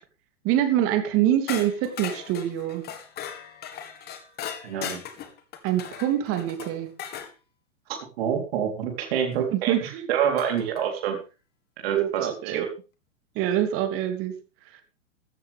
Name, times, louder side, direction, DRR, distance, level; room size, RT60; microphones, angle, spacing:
voice 1, 0.4-2.8 5.6-6.9 9.5-10.1 11.9-12.7 13.3-14.3, right 11 dB, 35° right, 7 dB, 3.2 m, -25 dB
sound 1, 1.5-7.3 9.3-9.4 10.4-10.8, left 8 dB, 25° left, 1.9 m, -38 dB
voice 2, 4.6-5.0 8.2-11.2 11.8-12.7, right 8 dB, 50° right, 3 dB, 3.9 m, -27 dB
15.0 x 13.5 x 3.6 m, 0.32 s
figure-of-eight pair, 110°, 37 cm